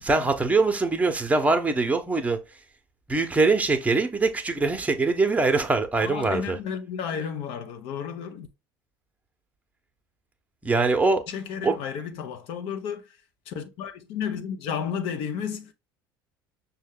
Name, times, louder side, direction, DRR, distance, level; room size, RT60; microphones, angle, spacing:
voice 1, 0.0-2.4 3.1-6.6 10.6-11.2 11.6-11.8, right 3 dB, 10° right, 0.9 m, -23 dB
voice 2, 6.0-8.5 11.3-13.2 13.5-15.7, left 7 dB, 55° left, 0.8 m, -32 dB
6.2 x 2.3 x 3.7 m
figure-of-eight pair, 70°, 12 cm